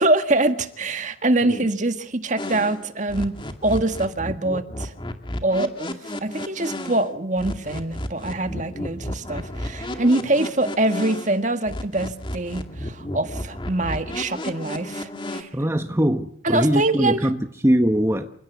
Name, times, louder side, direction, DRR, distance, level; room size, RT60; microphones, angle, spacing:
voice 1, 0.0-3.4 3.6-4.9 5.4-15.5 16.4-17.2, right 2 dB, 40° right, 1.7 m, -24 dB
sound 1, 2.4-7.1 7.4-11.4 11.6-15.4, left 1 dB, 25° left, 2.2 m, -32 dB
voice 2, 15.5-18.3, equal, 15° right, 1.1 m, -21 dB
28.5 x 17.0 x 8.3 m
head